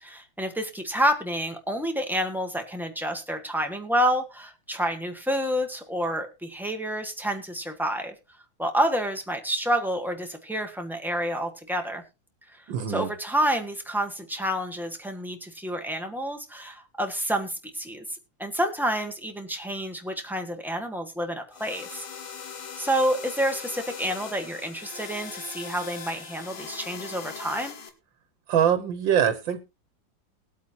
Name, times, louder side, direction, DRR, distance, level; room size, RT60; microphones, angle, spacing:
voice 1, 0.0-8.1 8.6-12.0 12.9-18.0 18.4-22.1 22.8-27.7, equal, ahead, 1.3 m, -28 dB
voice 2, 12.7-13.1 28.5-29.6, right 9 dB, 85° right, 1.7 m, -23 dB
sound 1, 21.5-27.9, left 6 dB, 70° left, 2.1 m, -40 dB
21.0 x 8.4 x 2.8 m
omnidirectional pair, 2.0 m